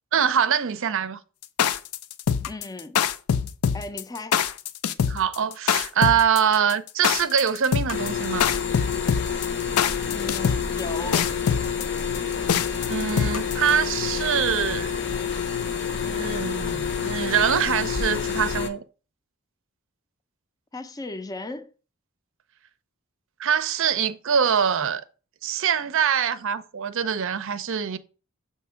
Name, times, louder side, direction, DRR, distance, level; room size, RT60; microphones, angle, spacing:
voice 1, 0.1-1.2 5.1-8.5 12.9-15.0 16.0-18.8 23.4-25.0 25.4-28.0, right 8 dB, 65° right, 0.5 m, -24 dB
sound 1, 1.4-13.7, left 7 dB, 90° left, 0.4 m, -23 dB
voice 2, 2.5-3.0 3.7-4.4 10.1-11.3 20.7-21.7, left 2 dB, 15° left, 0.4 m, -36 dB
sound 2, 7.9-18.7, left 7 dB, 60° left, 0.7 m, -28 dB
6.8 x 2.9 x 5.6 m
head